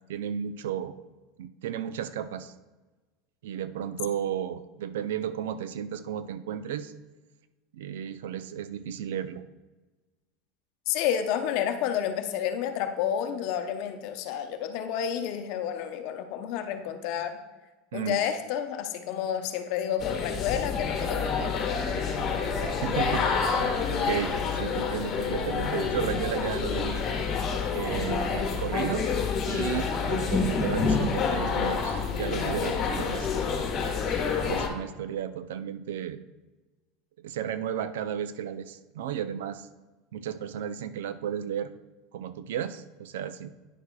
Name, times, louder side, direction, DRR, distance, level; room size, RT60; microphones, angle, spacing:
voice 1, 0.1-0.9 1.4-2.5 3.4-6.9 7.7-9.4 17.9-18.2 22.6-27.1 27.7-29.1 29.5-33.4 34.3-36.2 37.2-39.7 40.1-41.7 42.1-43.5, right 9 dB, 90° right, 13 dB, 0.4 m, -34 dB
voice 2, 10.9-17.4 17.9-21.6, left 9 dB, 65° left, 7 dB, 0.7 m, -30 dB
sound 1, 20.0-34.7, left 5 dB, 40° left, 1.4 m, -28 dB
9.8 x 6.6 x 2.3 m, 1.2 s
supercardioid pair, 120°, 0 cm